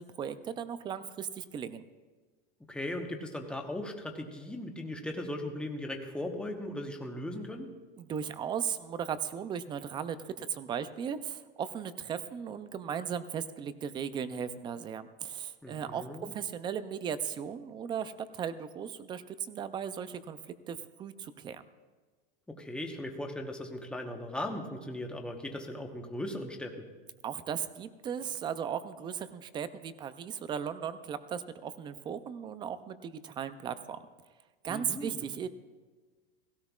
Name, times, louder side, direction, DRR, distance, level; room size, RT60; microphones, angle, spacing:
voice 1, 0.0-1.8 8.0-20.4 20.7-21.6 27.2-34.0 34.6-35.5, right 8 dB, 15° right, 13 dB, 0.4 m, -37 dB
voice 2, 2.7-7.7 15.6-16.3 22.5-26.9 34.7-35.3, left 1 dB, 5° left, 2 dB, 1.0 m, -38 dB
17.0 x 16.5 x 2.4 m, 1.4 s
supercardioid pair, 145°, 30 cm